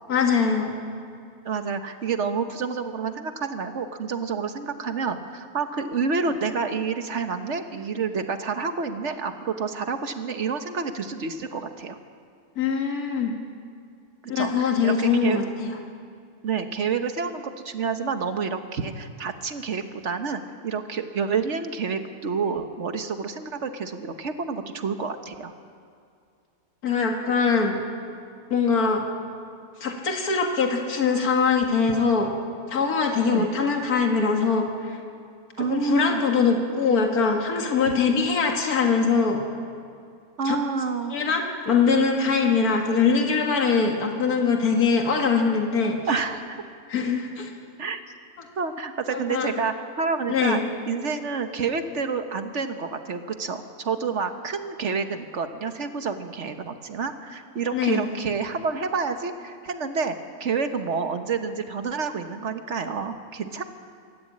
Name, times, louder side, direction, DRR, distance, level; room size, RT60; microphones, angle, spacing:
voice 1, 0.1-0.8 12.6-13.3 14.3-15.7 26.8-27.8 28.5-29.0 29.8-32.3 32.7-35.0 35.6-39.4 40.4-40.6 41.1-46.0 46.9-47.5 49.1-49.6 50.3-50.7 57.7-58.0, left 5 dB, 75° left, 2 dB, 2.3 m, -22 dB
voice 2, 1.4-12.0 14.2-15.4 16.4-25.5 33.3-33.5 35.6-36.2 40.4-41.1 46.1-46.6 47.8-48.0 48.6-60.1 60.4-63.6, right 5 dB, 50° right, 7 dB, 1.4 m, -29 dB
24.5 x 14.0 x 8.6 m, 2.3 s
omnidirectional pair, 1.6 m